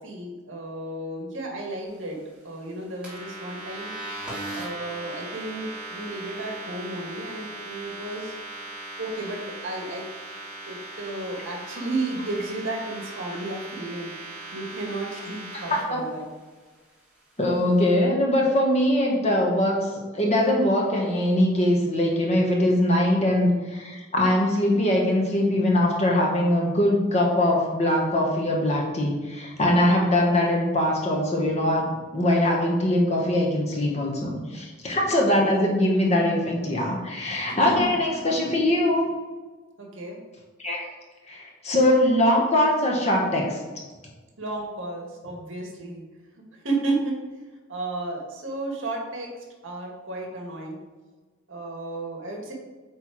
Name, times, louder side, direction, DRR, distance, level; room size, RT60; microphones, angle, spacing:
voice 1, 0.0-3.9 4.5-8.3 9.0-10.0 10.6-16.3 35.3-35.7 37.5-38.0 39.8-40.2 44.4-46.0 46.3-47.2 47.7-49.3 49.6-50.8 51.5-52.5, right 2 dB, 70° right, 0 dB, 1.7 m, -33 dB
sound 1, 3.0-15.8, right 2 dB, 5° right, 2.3 m, -38 dB
voice 2, 17.4-39.1 40.6-40.8 41.3-43.6, left 1 dB, 30° left, -1 dB, 1.2 m, -22 dB
8.4 x 3.4 x 4.5 m, 1.3 s
head